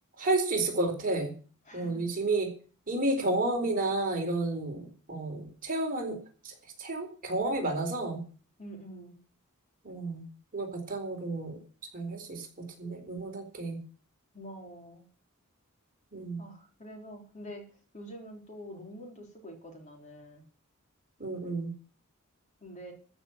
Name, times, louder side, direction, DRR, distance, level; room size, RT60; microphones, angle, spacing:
voice 1, 0.2-1.3 1.7-2.5 2.9-6.2 6.4-8.2 9.8-10.3 10.5-11.6 11.9-12.5 12.8-13.8 16.1-16.4 21.2-21.7, right 2 dB, 40° right, 1 dB, 4.2 m, -31 dB
voice 2, 1.7-2.0 8.6-9.2 14.3-15.0 16.4-17.6 17.9-20.4 22.6-22.9, equal, 35° left, 2 dB, 3.9 m, -46 dB
14.0 x 6.2 x 9.0 m, 0.40 s
head